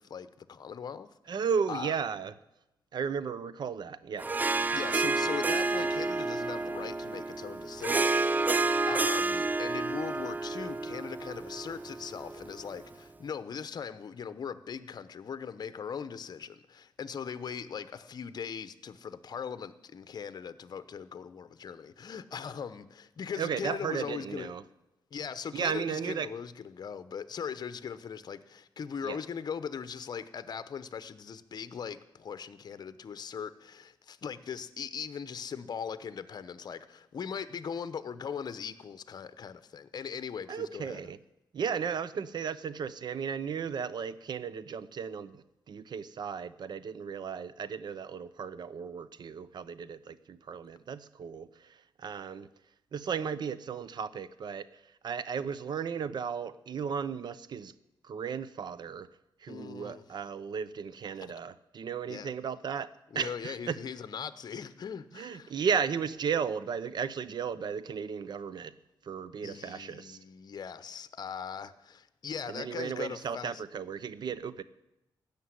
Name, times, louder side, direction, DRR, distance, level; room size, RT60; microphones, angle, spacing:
voice 1, 0.0-1.4 1.7-1.9 4.7-24.5 25.1-41.0 59.5-60.1 61.2-61.3 62.1-62.3 63.1-65.5 69.4-73.6, left 7 dB, 55° left, 0.8 m, -40 dB
voice 2, 1.3-2.3 2.9-4.3 23.4-24.6 25.5-26.3 29.0-29.2 40.5-41.2 41.5-52.5 52.9-57.7 58.0-59.1 59.4-62.9 63.1-63.8 65.1-68.7 69.0-70.2 72.5-74.6, right 6 dB, 60° right, 0.7 m, -35 dB
Harp, 4.2-12.8, right 3 dB, 20° right, 0.4 m, -30 dB
16.0 x 6.8 x 9.6 m
cardioid pair, 95°, 8 cm